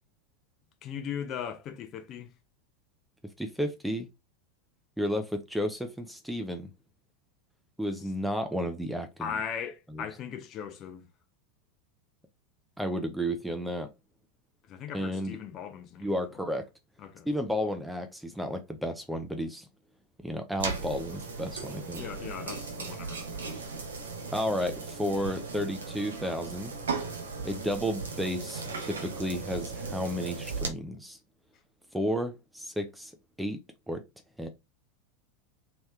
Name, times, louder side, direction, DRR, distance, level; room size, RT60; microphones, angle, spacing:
voice 1, 0.8-2.3 9.2-11.1 14.7-16.5 17.0-17.3 21.9-23.6, left 8 dB, 35° left, 0.7 m, -39 dB
voice 2, 3.4-4.1 5.0-6.7 7.8-9.3 12.8-13.9 14.9-15.4 16.0-16.7 17.3-19.7 20.2-22.0 24.3-26.7 27.4-31.2 31.9-33.1 33.4-33.6 33.9-34.0 34.4-34.5, equal, ahead, 0.5 m, -32 dB
sound 1, 20.6-30.7, right 4 dB, 75° right, 0.7 m, -37 dB
3.2 x 2.9 x 2.3 m
figure-of-eight pair, 85°, 0 cm